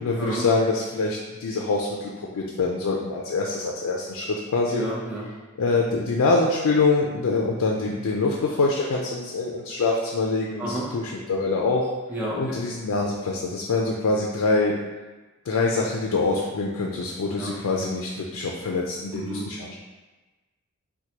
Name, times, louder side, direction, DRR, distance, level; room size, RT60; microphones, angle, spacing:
voice 1, 0.0-4.8 5.6-11.9 12.3-14.8 15.5-19.7, left 3 dB, 85° left, -1 dB, 0.4 m, -25 dB
voice 2, 4.7-5.3 10.6-10.9 12.1-12.6 17.4-17.6 19.1-19.5, right 1 dB, 10° right, -6 dB, 0.6 m, -30 dB
4.5 x 2.2 x 2.8 m, 1.2 s
head